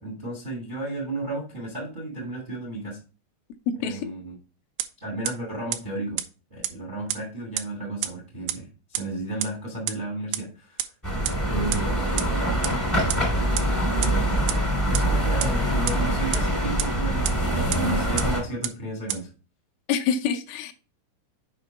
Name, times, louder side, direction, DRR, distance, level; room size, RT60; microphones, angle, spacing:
voice 1, 0.0-3.0 3.8-4.3 5.0-6.2 6.5-10.9 11.5-12.7 14.0-19.3, right 2 dB, 40° right, 0.6 m, -33 dB
voice 2, 3.7-4.0 19.9-20.7, left 7 dB, 80° left, 3.3 m, -26 dB
sound 1, 4.8-4.9 5.3-5.4 5.7-5.8 6.2-6.3 6.6-6.7 7.1-7.2 7.6-7.7 8.0-8.1 8.5-8.6 8.9-9.0 9.4-9.5 9.9-10.0 10.3-10.4 10.8-10.9 11.3-11.4 11.7-11.8 12.2-12.3 12.6-12.7 13.1-13.2 13.6-13.7 14.0-14.1 14.5-14.6 14.9-15.0 15.4-15.5 15.9-16.0 16.3-16.4 16.8-16.9 17.2-17.3 17.7-17.8 18.2-18.3 18.6-18.7 19.1-19.2, right 14 dB, 90° right, 2.5 m, -26 dB
sound 2, 11.0-18.4, right 1 dB, 15° left, 0.6 m, -24 dB
7.4 x 5.2 x 4.0 m
omnidirectional pair, 5.6 m